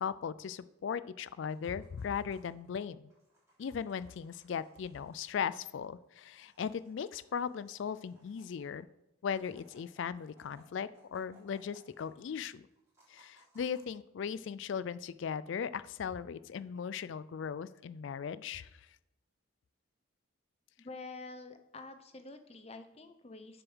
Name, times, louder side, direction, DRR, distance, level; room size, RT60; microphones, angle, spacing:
voice 1, 0.0-3.0 3.6-8.9 9.2-12.6 13.1-18.7, left 7 dB, 60° left, 17 dB, 0.3 m, -38 dB
sound 1, 1.4-2.7 3.1-5.4 5.8-5.9 6.1-8.8 9.3-12.4 12.7-13.9, right 1 dB, 15° right, 3.5 m, -67 dB
voice 2, 20.8-23.6, left 3 dB, 30° left, 8 dB, 0.7 m, -48 dB
7.0 x 6.8 x 6.2 m, 0.91 s
head